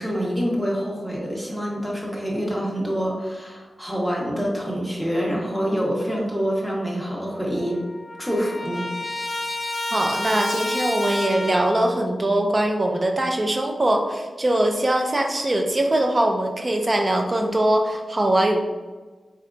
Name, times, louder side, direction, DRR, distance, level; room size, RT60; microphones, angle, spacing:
voice 1, 0.0-7.8 8.2-8.9, equal, 5° right, -3 dB, 0.9 m, -26 dB
Trumpet, 7.2-7.3 7.5-11.9, left 1 dB, 25° left, 0.5 m, -30 dB
voice 2, 9.9-18.6, right 1 dB, 30° right, 3 dB, 0.4 m, -22 dB
4.2 x 3.3 x 2.5 m, 1.3 s
wide cardioid pair, 115°, 0 cm